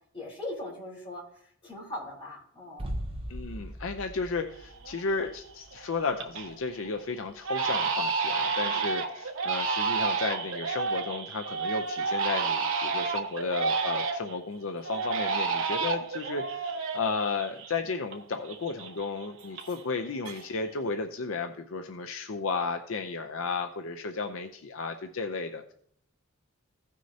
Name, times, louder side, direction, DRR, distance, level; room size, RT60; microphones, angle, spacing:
voice 1, 0.1-2.9 8.6-8.9, left 1 dB, 25° left, -6 dB, 3.8 m, -40 dB
sound 1, 2.8-8.5 8.8-8.9, equal, 25° right, 0.8 m, -41 dB
voice 2, 3.3-25.7, left 4 dB, 65° left, 6 dB, 0.6 m, -33 dB
Crying sobbing, 4.3-4.4 4.8-5.3 5.7-6.5 6.8-7.0 7.4-14.4 14.8-18.2 18.4-20.0 20.2-20.8, right 5 dB, 65° right, 1.2 m, -30 dB
16.0 x 6.2 x 2.8 m, 0.64 s
head